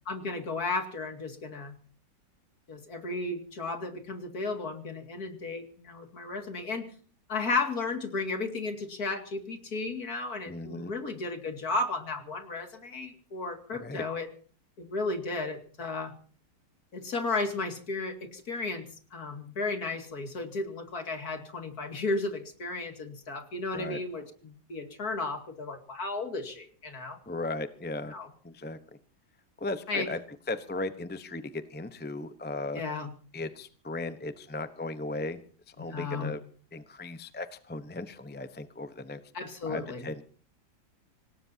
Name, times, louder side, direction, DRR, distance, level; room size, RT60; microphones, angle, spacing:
voice 1, 0.1-1.7 2.7-6.9 7.3-14.3 14.8-16.1 16.9-18.9 19.1-27.2 28.1-28.3 29.9-30.1 32.7-33.1 35.8-36.3 39.3-40.1, left 3 dB, 50° left, 5 dB, 2.9 m, -34 dB
voice 2, 10.5-10.9 13.7-14.0 23.7-24.0 27.3-28.1 28.4-28.8 29.6-30.2 30.5-32.8 33.3-35.4 35.7-36.4 36.7-39.2 39.6-40.2, left 2 dB, 10° left, 10 dB, 0.6 m, -36 dB
26.5 x 18.5 x 2.8 m, 0.42 s
omnidirectional pair, 2.0 m